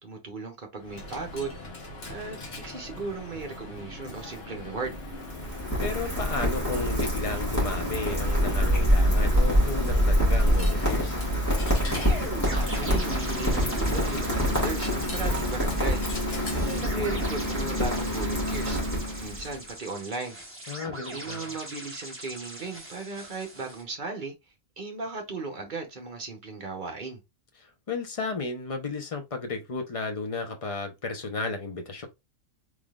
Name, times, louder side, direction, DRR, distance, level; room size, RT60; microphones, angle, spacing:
voice 1, 0.0-1.6 2.1-5.0 12.5-16.1 16.4-18.8 19.2-20.4 21.1-24.3 24.8-27.2, right 3 dB, 40° right, 1.0 m, -36 dB
Coin (dropping), 0.8-17.4, left 2 dB, 55° left, 1.3 m, -41 dB
Rain, 4.8-19.6, equal, 15° left, 1.8 m, -26 dB
voice 2, 5.8-11.2 20.7-21.6 27.6-32.1, left 3 dB, 35° left, 0.6 m, -33 dB
sound 1, 11.9-23.8, right 1 dB, 10° right, 1.0 m, -41 dB
3.6 x 3.2 x 2.4 m
omnidirectional pair, 1.3 m